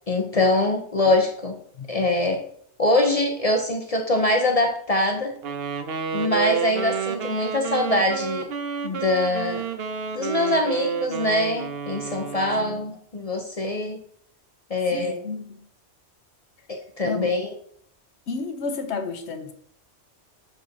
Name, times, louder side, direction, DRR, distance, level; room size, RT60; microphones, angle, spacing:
voice 1, 0.1-1.6 1.9-2.4 2.8-5.3 6.1-8.5 8.8-9.6 10.1-14.0 14.7-15.2 16.7-17.5, left 2 dB, 40° left, 3 dB, 0.6 m, -23 dB
Wind instrument woodwind instrument, 5.4-12.9, right 7 dB, 65° right, 0.9 m, -30 dB
voice 2, 12.5-12.8 14.9-15.7 17.0-17.3 18.3-19.5, left 4 dB, 70° left, 8 dB, 1.0 m, -32 dB
6.3 x 5.4 x 2.7 m, 0.62 s
omnidirectional pair, 1.2 m